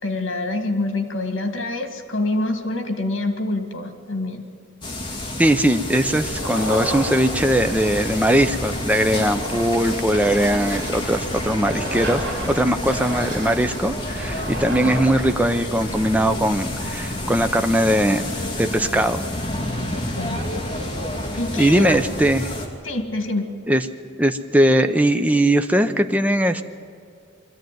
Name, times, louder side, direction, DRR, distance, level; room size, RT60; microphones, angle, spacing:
voice 1, 0.0-4.4 20.2-20.4 21.4-22.0 22.8-23.5, left 2 dB, 75° left, 6 dB, 2.3 m, -26 dB
sound 1, 4.8-22.7, left 1 dB, 25° left, 2.4 m, -29 dB
voice 2, 5.4-18.3 18.6-19.2 21.6-22.5 23.7-23.8 24.2-26.6, right 1 dB, 5° right, 7 dB, 0.7 m, -20 dB
sound 2, 6.3-15.6, right 1 dB, 55° right, 4.6 m, -33 dB
22.5 x 14.5 x 9.4 m, 2.4 s
head